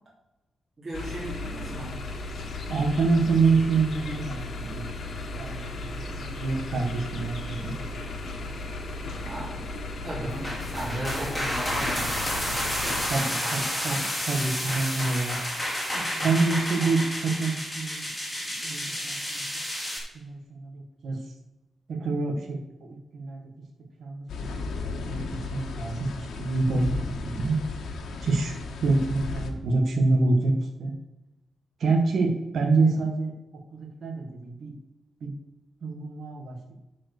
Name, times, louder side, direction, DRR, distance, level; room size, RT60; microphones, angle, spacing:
voice 1, 0.8-1.9 9.2-9.5 10.0-10.4 10.7-13.5 13.9-14.2 14.6-14.8, right 1 dB, 30° right, -7 dB, 3.3 m, -37 dB
sound 1, 0.9-13.1, left 2 dB, 50° left, 1.5 m, -35 dB
voice 2, 2.7-5.1 5.4-7.7 10.4-10.5 13.1-18.1 18.6-19.4 20.1-21.3 21.9-23.5 24.0-24.6 25.1-27.6 28.2-31.0 31.8-34.7 35.2-35.3 35.8-36.6, right 3 dB, 55° right, 2 dB, 1.3 m, -27 dB
sound 2, 10.3-20.0, equal, 5° left, 2.5 m, -30 dB
sound 3, 24.3-29.5, left 3 dB, 80° left, 1.4 m, -35 dB
11.5 x 4.5 x 6.5 m, 0.99 s
wide cardioid pair, 165°, 0 cm